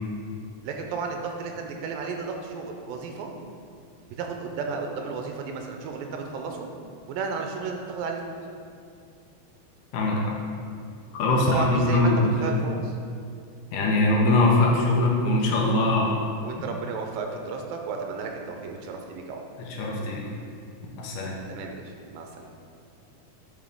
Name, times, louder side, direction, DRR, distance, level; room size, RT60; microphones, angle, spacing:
voice 1, 0.6-3.3 4.2-6.7 7.1-8.4 11.5-12.9 16.4-19.4 21.5-21.8 22.1-22.5, right 4 dB, 85° right, 3 dB, 2.4 m, -33 dB
voice 2, 9.9-10.3 11.1-12.6 13.7-16.2 19.6-20.3 21.0-21.4, left 2 dB, 75° left, -2 dB, 2.1 m, -22 dB
8.9 x 4.8 x 3.6 m, 2.4 s
omnidirectional pair, 4.2 m